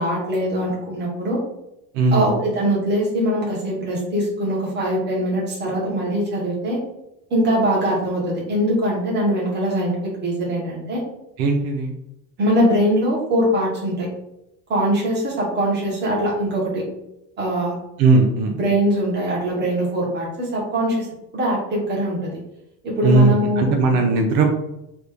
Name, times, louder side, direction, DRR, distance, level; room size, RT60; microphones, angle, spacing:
voice 1, 0.0-1.4 2.1-6.8 7.3-11.0 12.4-14.1 14.7-16.8 17.4-17.8 18.6-21.1 21.3-22.3 22.8-24.0, equal, 30° right, -5 dB, 1.2 m, -22 dB
voice 2, 1.9-2.3 11.4-11.9 18.0-18.6 23.0-24.5, right 3 dB, 80° right, 3 dB, 0.7 m, -17 dB
3.1 x 2.6 x 3.4 m, 0.85 s
cardioid pair, 170°, 34 cm